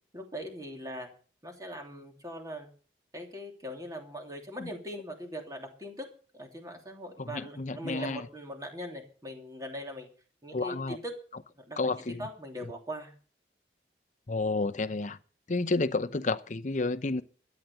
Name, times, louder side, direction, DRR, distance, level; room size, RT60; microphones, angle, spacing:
voice 1, 0.1-1.1 1.4-2.7 3.1-6.1 6.3-10.1 10.4-11.2 11.6-11.9 12.2-13.1, equal, 20° right, 2.9 m, -41 dB
voice 2, 7.2-8.3 10.5-11.0 11.8-12.3 14.3-15.2 15.5-17.2, left 3 dB, 40° left, 0.7 m, -30 dB
13.0 x 9.3 x 6.7 m
head